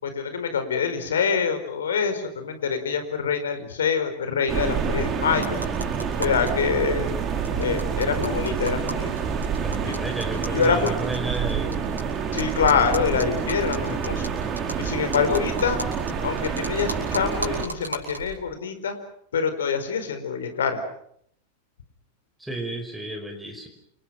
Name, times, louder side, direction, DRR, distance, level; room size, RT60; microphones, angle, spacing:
voice 1, 0.0-5.6 6.2-7.2 7.6-9.1 9.9-10.0 10.5-10.9 12.3-14.2 14.8-15.8 16.2-18.9 19.3-20.8, left 6 dB, 65° left, 9 dB, 4.7 m, -25 dB
sound 1, 4.5-17.6, right 6 dB, 30° right, 4.0 m, -28 dB
sound 2, 5.4-6.5 6.8-6.9 7.1-7.2 7.4-12.0 12.4-18.4, right 1 dB, 80° right, 6.3 m, -37 dB
voice 2, 9.6-11.7 22.4-23.7, right 2 dB, 5° right, 2 dB, 5.3 m, -32 dB
29.5 x 27.5 x 6.1 m, 0.69 s
figure-of-eight pair, 90°, 0 cm